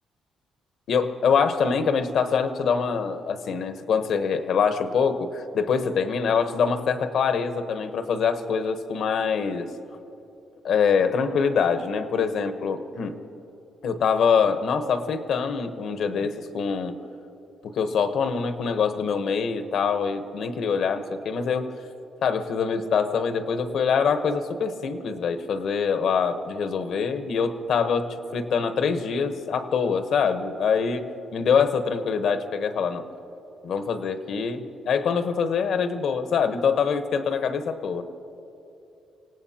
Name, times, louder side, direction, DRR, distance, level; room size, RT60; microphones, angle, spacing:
voice 1, 0.9-9.7 10.6-13.2 13.8-16.9 17.6-21.7 22.2-31.1 31.3-33.0 33.6-38.0, left 6 dB, 70° left, 9 dB, 1.0 m, -24 dB
26.0 x 17.0 x 2.9 m, 2.8 s
cardioid pair, 90°, 0 cm